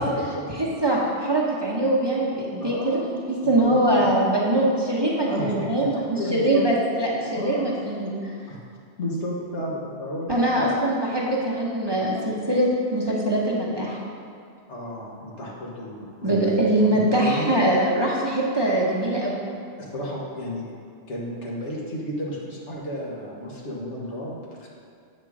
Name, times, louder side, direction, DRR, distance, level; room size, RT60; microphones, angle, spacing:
voice 1, 0.0-0.5 2.6-3.0 3.4-3.8 5.3-6.7 7.3-7.7 8.5-8.6 9.0-10.7 14.7-16.6 16.9-17.6 19.8-20.7 21.1-24.7, equal, 80° left, -4 dB, 1.6 m, -32 dB
voice 2, 0.6-8.3 10.3-14.0 16.2-19.5, right 1 dB, 25° right, -5 dB, 0.8 m, -23 dB
7.9 x 3.7 x 6.0 m, 2.3 s
omnidirectional pair, 1.2 m